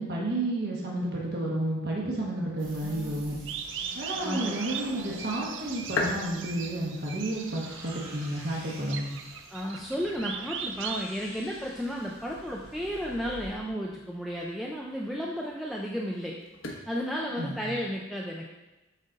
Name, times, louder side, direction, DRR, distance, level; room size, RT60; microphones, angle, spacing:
voice 1, 0.0-3.4 3.9-9.1 17.3-17.7, right 1 dB, 50° right, -3 dB, 1.2 m, -31 dB
sound 1, 2.6-13.5, right 1 dB, 80° right, 2.3 m, -47 dB
voice 2, 2.8-3.2 4.2-4.6 9.5-16.4 16.9-18.4, equal, ahead, -2 dB, 0.4 m, -33 dB
sound 2, 3.5-17.7, left 3 dB, 70° left, 1.1 m, -43 dB
sound 3, 3.5-11.0, right 7 dB, 65° right, 0.5 m, -39 dB
9.0 x 3.9 x 3.9 m, 1.1 s
head